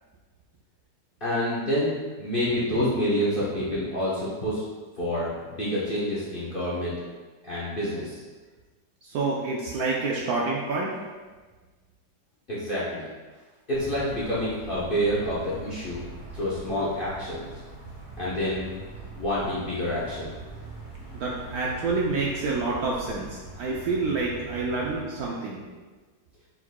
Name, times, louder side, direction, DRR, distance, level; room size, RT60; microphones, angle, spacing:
voice 1, 1.2-4.6 5.0-6.9 7.4-8.1 12.5-13.0 13.7-16.0 16.3-17.4 18.2-18.6 19.2-20.3, equal, 45° left, -9 dB, 0.7 m, -28 dB
voice 2, 9.0-11.0 21.1-25.6, right 3 dB, 70° right, -3 dB, 0.9 m, -28 dB
sound 1, 13.7-25.0, right 2 dB, 20° left, 1.1 m, -42 dB
4.7 x 4.0 x 2.2 m, 1.4 s
omnidirectional pair, 2.0 m